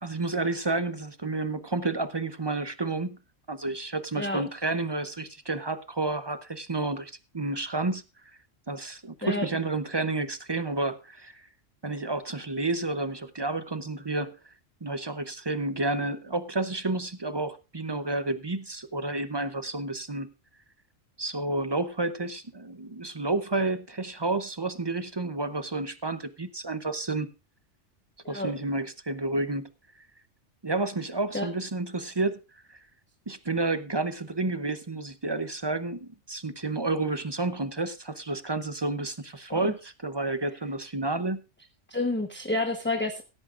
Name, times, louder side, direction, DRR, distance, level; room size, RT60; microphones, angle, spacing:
voice 1, 0.0-3.2 3.5-8.0 8.7-11.5 11.8-14.4 14.8-20.3 21.2-27.3 28.3-29.7 30.6-32.4 32.7-32.8 33.3-41.4, right 2 dB, 25° right, 0.6 m, -30 dB
voice 2, 41.9-43.2, left 2 dB, 10° left, 0.9 m, -29 dB
16.5 x 13.5 x 2.5 m
omnidirectional pair, 1.3 m